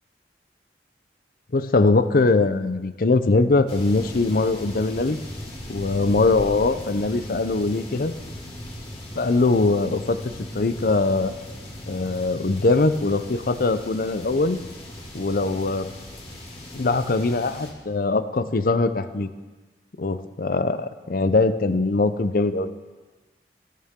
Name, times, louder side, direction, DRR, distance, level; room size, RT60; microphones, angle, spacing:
voice 1, 1.5-5.2 5.7-8.1 9.2-10.2 10.5-11.3 11.9-14.6 15.1-15.9 16.7-19.3 20.0-22.8, left 3 dB, 55° left, 12 dB, 0.6 m, -22 dB
sound 1, 3.7-17.7, left 1 dB, 30° left, 2.3 m, -38 dB
16.0 x 12.5 x 3.7 m, 1.3 s
head